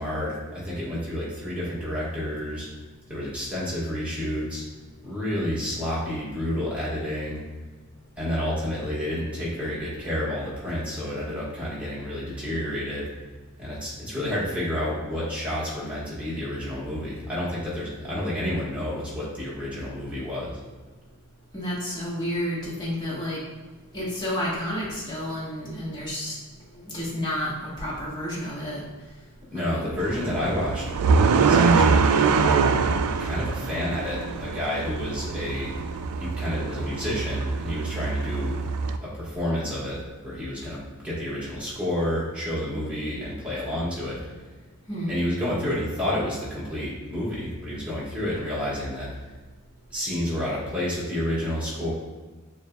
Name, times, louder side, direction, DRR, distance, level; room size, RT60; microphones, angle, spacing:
voice 1, 0.0-2.7 3.1-4.6 5.0-7.4 8.2-13.1 13.6-20.6 29.5-30.9 31.3-32.4 33.2-35.7 36.2-38.7 39.0-44.2 45.1-49.1 49.9-51.9, left 1 dB, 5° right, -9 dB, 1.4 m, -30 dB
voice 2, 21.5-23.4 23.9-26.4 26.8-28.8 29.5-29.9 44.9-45.1, equal, 20° left, -8 dB, 1.3 m, -30 dB
sound 1, 30.0-39.0, right 5 dB, 90° right, 0.3 m, -24 dB
6.8 x 2.4 x 2.3 m, 1.3 s
head